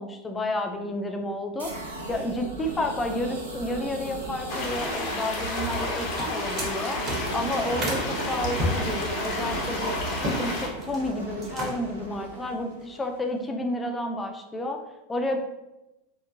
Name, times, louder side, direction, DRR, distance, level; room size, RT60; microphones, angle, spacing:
voice 1, 0.0-1.8 2.1-10.0 10.4-14.8 15.1-15.4, left 1 dB, 15° left, 4 dB, 0.4 m, -31 dB
sound 1, 1.6-13.4, right 2 dB, 85° right, 0.5 m, -37 dB
sound 2, 4.5-10.7, left 1 dB, 55° left, 0.7 m, -31 dB
sound 3, 6.0-8.1 8.6-10.4 10.7-11.1 11.4-12.0, left 1 dB, 40° right, 0.7 m, -32 dB
2.9 x 2.1 x 2.4 m, 0.97 s
figure-of-eight pair, 85°, 0 cm